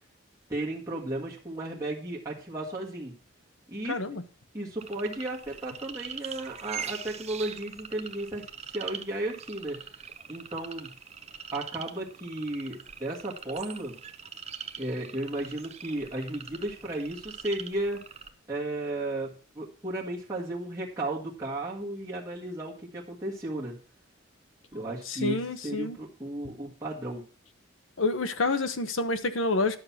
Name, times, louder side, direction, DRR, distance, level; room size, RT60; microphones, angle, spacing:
voice 1, 0.5-3.1 3.7-4.0 4.5-9.8 10.3-10.9 11.5-13.9 14.8-18.0 18.5-23.8 24.7-27.2, right 1 dB, 15° right, 1.7 m, -34 dB
voice 2, 3.9-4.3 25.1-26.0 28.0-29.8, left 3 dB, 85° left, 1.1 m, -28 dB
sound 1, 4.8-18.3, right 7 dB, 35° right, 0.8 m, -42 dB
11.0 x 6.7 x 5.7 m
head